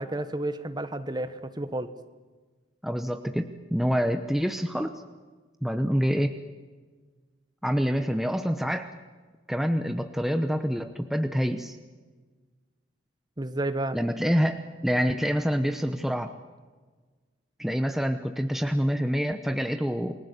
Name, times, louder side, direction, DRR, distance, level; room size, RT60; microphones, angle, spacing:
voice 1, 0.0-1.9 13.4-14.0, right 1 dB, 20° right, 11 dB, 1.1 m, -31 dB
voice 2, 2.8-4.9 5.6-6.3 7.6-8.9 9.5-11.8 13.9-16.3 17.6-20.2, equal, ahead, 7 dB, 0.9 m, -26 dB
28.5 x 20.5 x 8.2 m, 1.4 s
head